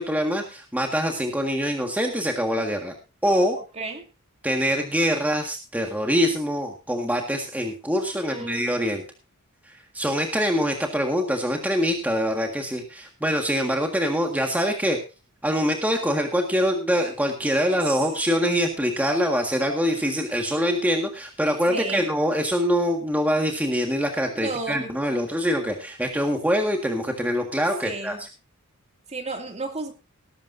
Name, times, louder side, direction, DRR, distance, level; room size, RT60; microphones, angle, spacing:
voice 1, 0.0-2.9 3.2-3.6 4.4-9.0 9.9-15.0 15.4-28.1, equal, 5° right, 2 dB, 1.7 m, -24 dB
voice 2, 3.7-4.1 8.1-8.7 17.5-17.8 21.7-22.1 24.4-24.9 27.8-28.2 29.1-29.9, right 3 dB, 30° right, 4 dB, 2.3 m, -33 dB
19.0 x 12.0 x 2.6 m, 0.31 s
head